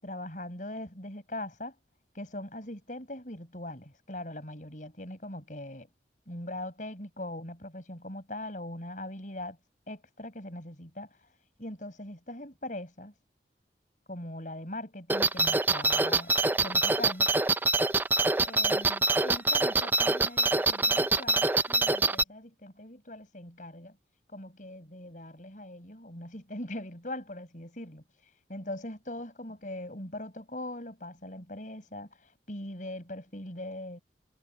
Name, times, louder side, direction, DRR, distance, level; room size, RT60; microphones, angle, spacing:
voice 1, 0.0-1.7 2.2-5.9 6.3-9.6 9.9-11.1 11.6-13.1 14.1-16.3 16.6-17.3 18.5-24.0 24.3-28.0 28.5-32.1 32.5-34.0, left 1 dB, 45° left, 6.9 m, -41 dB
sound 1, 15.1-22.2, right 3 dB, 10° right, 0.4 m, -25 dB
head